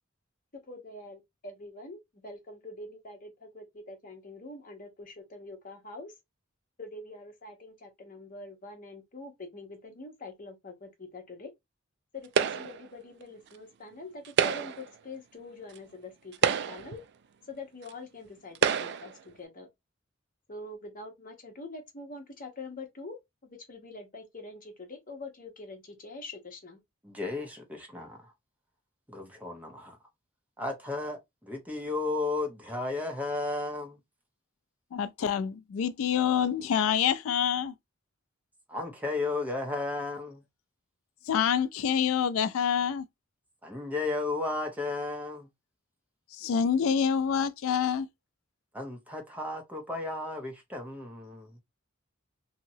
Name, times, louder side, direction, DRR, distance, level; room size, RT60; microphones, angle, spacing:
voice 1, 0.5-6.1 6.8-11.5 12.1-17.0 17.5-19.7 20.5-26.8, left 2 dB, 45° left, 1.0 m, -45 dB
sound 1, 12.4-12.9 14.2-14.9 15.8-15.9 16.3-17.0 17.9-18.0 18.6-19.1, right 7 dB, 55° right, 0.3 m, -27 dB
voice 2, 27.0-28.3 29.1-30.0 30.6-34.0 38.7-40.4 43.6-45.5 48.7-51.6, left 3 dB, 10° right, 0.8 m, -34 dB
voice 3, 34.9-37.7 41.3-43.1 46.3-48.1, left 7 dB, 85° left, 0.3 m, -27 dB
2.8 x 2.8 x 2.7 m
head